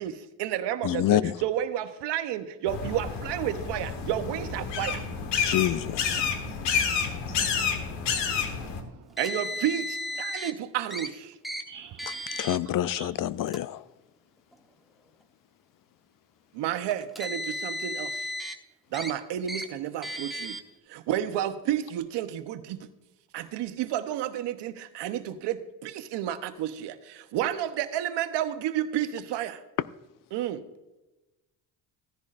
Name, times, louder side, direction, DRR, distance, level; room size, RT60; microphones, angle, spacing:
voice 1, 0.0-5.0 9.2-11.3 16.5-18.3 18.9-20.6 20.9-22.9 23.3-29.6 30.3-30.6, right 11 dB, 75° right, 1.0 m, -31 dB
voice 2, 0.8-1.4 5.4-6.2 12.4-13.8, left 13 dB, 50° left, 0.5 m, -27 dB
sound 1, 2.7-8.8, left 6 dB, 85° left, 1.5 m, -29 dB
voice 3, 6.9-9.2 11.7-13.1, right 8 dB, 50° right, 0.6 m, -50 dB
Car, 9.2-10.5 10.9-11.1 11.4-11.6 12.0-12.6 13.4-13.6 14.5-14.6 16.9-18.5 18.9-19.1 19.5-19.7 20.0-20.6, equal, ahead, 1.1 m, -34 dB
15.5 x 10.5 x 2.5 m
cardioid pair, 90°, 41 cm